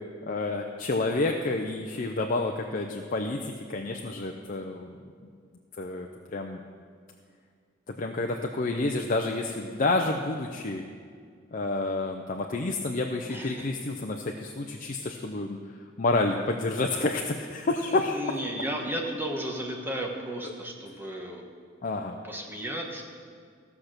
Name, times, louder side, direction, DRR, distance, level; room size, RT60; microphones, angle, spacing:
voice 1, 0.2-5.1 5.8-6.6 7.9-10.8 11.5-15.6 16.0-18.4 20.4-20.5 21.8-22.2, left 2 dB, 45° left, 3 dB, 0.6 m, -29 dB
voice 2, 17.9-21.4 22.2-23.0, right 1 dB, 10° right, 0 dB, 1.3 m, -34 dB
15.0 x 5.9 x 6.6 m, 2.1 s
head